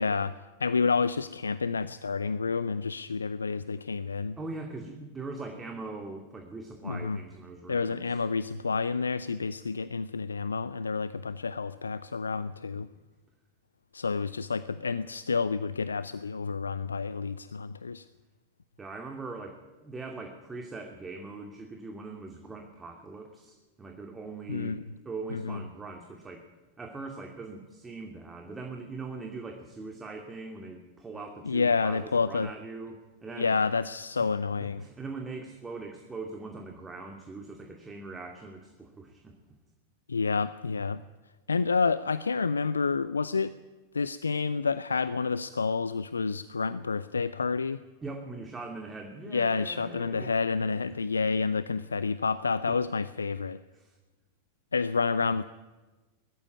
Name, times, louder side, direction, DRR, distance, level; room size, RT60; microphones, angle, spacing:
voice 1, 0.0-4.4 6.8-7.2 7.7-12.9 13.9-18.1 24.5-24.8 25.3-25.6 31.4-32.5 33.4-34.9 40.1-41.0 41.5-43.5 43.9-47.8 49.3-53.6 54.7-55.4, left 4 dB, 75° left, 16 dB, 0.5 m, -29 dB
voice 2, 4.4-8.2 18.8-24.8 25.0-26.5 26.8-33.6 34.8-39.4 48.0-50.3 52.7-52.8 53.7-54.0, right 3 dB, 15° right, 3 dB, 2.4 m, -41 dB
20.5 x 14.0 x 9.4 m, 1.2 s
figure-of-eight pair, 90°, 0 cm